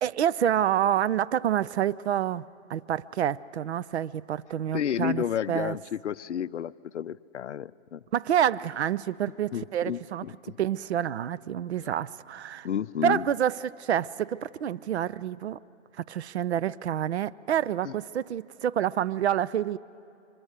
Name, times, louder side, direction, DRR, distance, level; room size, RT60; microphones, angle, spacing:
voice 1, 0.0-5.8 8.1-12.7 13.0-15.6 16.0-19.8, right 10 dB, 55° right, 17 dB, 0.6 m, -28 dB
voice 2, 4.7-8.0 9.5-10.6 12.6-13.3 17.8-17.9, left 9 dB, 60° left, 15 dB, 0.6 m, -31 dB
25.5 x 25.0 x 8.1 m, 2.8 s
hypercardioid pair, 155°, 39 cm